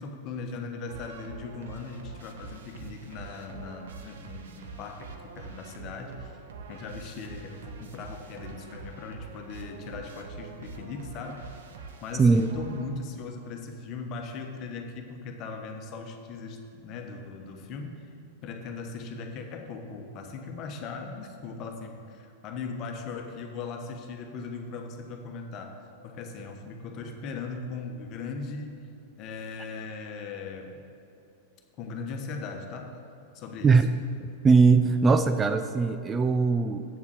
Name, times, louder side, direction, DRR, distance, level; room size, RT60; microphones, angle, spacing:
voice 1, 0.0-6.4 6.7-11.6 12.0-18.0 18.4-25.7 26.0-28.9 29.2-30.8 31.8-33.0 33.3-33.9, left 4 dB, 40° left, 4 dB, 1.2 m, -39 dB
sound 1, 0.9-13.3, right 5 dB, 65° right, 0.9 m, -45 dB
voice 2, 34.2-36.9, right 4 dB, 20° right, 9 dB, 0.4 m, -20 dB
8.1 x 7.3 x 6.4 m, 2.9 s
figure-of-eight pair, 90°, 0 cm